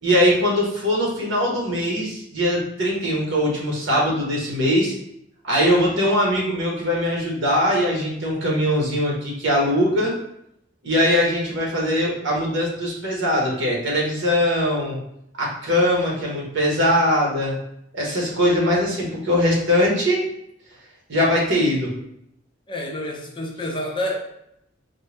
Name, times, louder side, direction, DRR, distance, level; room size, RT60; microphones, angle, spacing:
voice 1, 0.0-4.9 5.4-10.1 10.8-15.0 15.4-17.5 17.9-20.2 21.1-21.9, equal, 60° right, -3 dB, 1.1 m, -21 dB
voice 2, 22.7-24.2, left 1 dB, 25° left, 0 dB, 0.5 m, -28 dB
4.3 x 2.0 x 3.2 m, 0.77 s
head